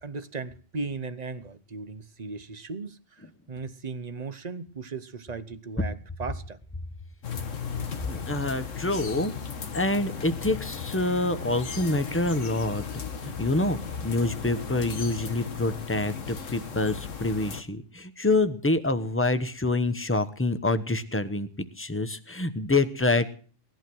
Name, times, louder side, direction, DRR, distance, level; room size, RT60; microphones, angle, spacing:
voice 1, 0.0-6.6, right 4 dB, 35° right, 0.9 m, -37 dB
sound 1, 7.2-17.6, left 6 dB, 85° left, 1.7 m, -36 dB
voice 2, 8.0-9.3 9.7-12.8 13.2-21.5 21.8-23.3, left 2 dB, 10° left, 0.9 m, -26 dB
18.5 x 11.5 x 6.1 m
omnidirectional pair, 1.3 m